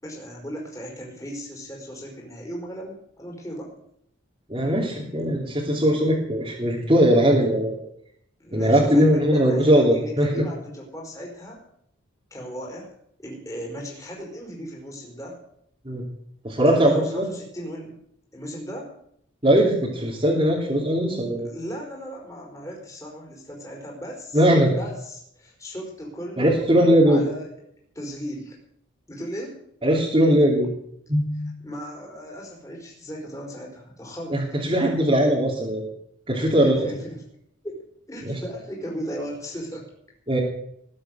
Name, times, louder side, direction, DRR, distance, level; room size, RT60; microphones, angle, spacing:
voice 1, 0.0-3.7 8.4-11.6 12.3-12.9 13.2-15.4 16.6-18.0 18.3-18.9 21.4-24.4 24.8-26.6 27.1-27.5 27.9-28.6 29.1-29.6 31.6-34.4 36.4-37.2 37.6-37.7 38.1-39.9, equal, 15° left, -1 dB, 4.9 m, -36 dB
voice 2, 4.5-7.8 8.5-10.3 15.8-16.0 16.4-17.3 19.4-21.5 24.3-24.7 26.4-27.2 29.8-30.7 31.1-31.5 34.3-35.9 36.3-36.8 38.2-38.3 40.3-40.4, equal, 25° right, -5 dB, 3.0 m, -20 dB
20.0 x 7.8 x 7.8 m, 0.70 s
head